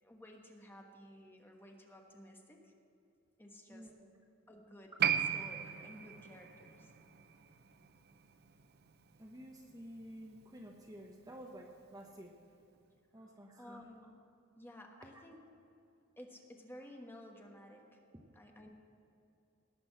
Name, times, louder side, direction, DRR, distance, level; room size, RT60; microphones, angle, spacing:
voice 1, 0.0-2.7 3.4-3.9 4.5-4.9 5.3-6.9 13.6-14.2 14.6-15.4 16.2-18.0 18.3-18.7, left 1 dB, 10° left, 1 dB, 1.3 m, -54 dB
voice 2, 3.7-4.1 9.2-12.4 13.1-13.9 15.1-15.2, equal, 20° right, 1 dB, 0.9 m, -51 dB
Piano, 5.0-12.0 12.2-12.3, right 8 dB, 50° right, 0.6 m, -39 dB
18.0 x 6.1 x 7.5 m, 2.7 s
head